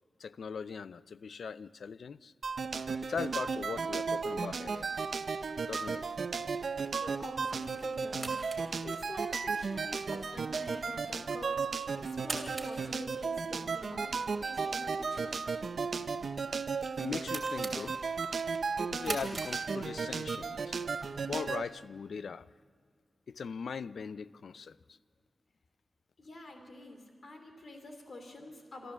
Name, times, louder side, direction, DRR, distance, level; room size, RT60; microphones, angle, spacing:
voice 1, 0.2-2.3 3.0-4.9 5.7-6.1 17.0-18.0 18.9-20.7 21.3-22.5 23.3-24.8, left 6 dB, 80° left, 17 dB, 0.4 m, -40 dB
sound 1, 2.4-21.6, right 5 dB, 65° right, 0.7 m, -35 dB
sound 2, 4.7-20.3, right 3 dB, 30° right, 2.7 m, -48 dB
voice 2, 7.0-15.4 26.2-28.9, left 1 dB, 55° left, 5 dB, 3.0 m, -48 dB
26.0 x 14.0 x 7.4 m, 2.1 s
wide cardioid pair, 150°, 0 cm